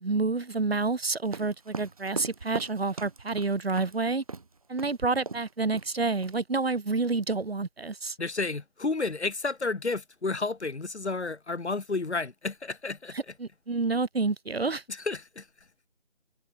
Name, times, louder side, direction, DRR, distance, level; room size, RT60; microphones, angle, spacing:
voice 1, 0.0-4.2 4.7-8.1 13.1-14.8, right 3 dB, 55° right, 1.6 m, -29 dB
sound 1, 1.3-3.9 4.3-4.5 4.8-5.0 5.3-5.5 5.7-6.3, right 4 dB, 30° right, 1.8 m, -38 dB
voice 2, 8.2-13.2 14.9-15.5, left 3 dB, 65° left, 1.6 m, -31 dB
figure-of-eight pair, 170°, 36 cm